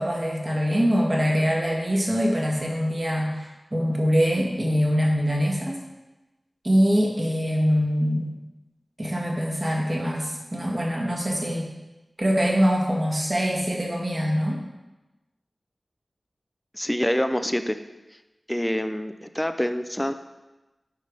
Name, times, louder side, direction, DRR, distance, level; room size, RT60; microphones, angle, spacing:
voice 1, 0.0-5.8 6.6-8.3 9.0-11.7 12.2-14.6, equal, 30° right, -1 dB, 1.5 m, -23 dB
voice 2, 16.7-17.8 18.5-20.1, equal, 10° left, 9 dB, 0.4 m, -26 dB
9.4 x 3.4 x 5.2 m, 1.1 s
wide cardioid pair, 70°, 0 cm